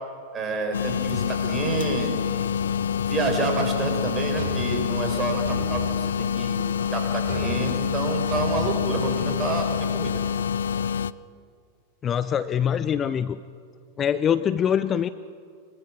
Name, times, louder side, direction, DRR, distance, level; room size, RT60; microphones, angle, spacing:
voice 1, 0.3-2.6 3.1-6.6 6.9-10.2, right 3 dB, 25° right, 4 dB, 5.0 m, -29 dB
sound 1, 0.7-11.1, left 7 dB, 65° left, 0.5 m, -26 dB
sound 2, 4.4-5.9 7.2-10.1, right 3 dB, 55° right, 6.6 m, -35 dB
voice 2, 12.0-13.4 14.0-15.1, left 8 dB, 25° left, 13 dB, 0.6 m, -24 dB
24.5 x 23.0 x 6.1 m, 2.2 s
figure-of-eight pair, 90°, 0 cm